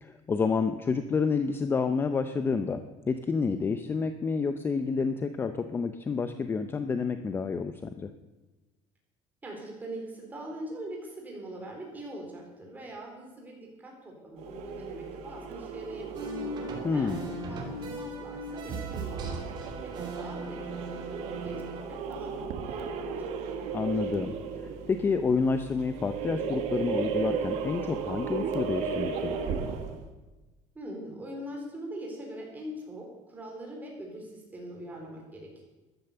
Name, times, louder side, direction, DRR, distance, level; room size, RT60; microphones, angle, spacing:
voice 1, 0.0-8.1 16.8-17.3 23.7-24.3 24.6-29.7, left 5 dB, 20° left, 9 dB, 0.6 m, -29 dB
voice 2, 9.4-16.4 16.9-17.2 17.5-23.3 30.7-35.6, right 1 dB, 15° right, -1 dB, 4.1 m, -42 dB
sound 1, 14.4-30.1, right 6 dB, 65° right, 1.7 m, -35 dB
sound 2, 16.1-21.8, right 2 dB, 35° right, 3.0 m, -38 dB
14.0 x 12.0 x 6.8 m, 1.1 s
cardioid pair, 170°, 12 cm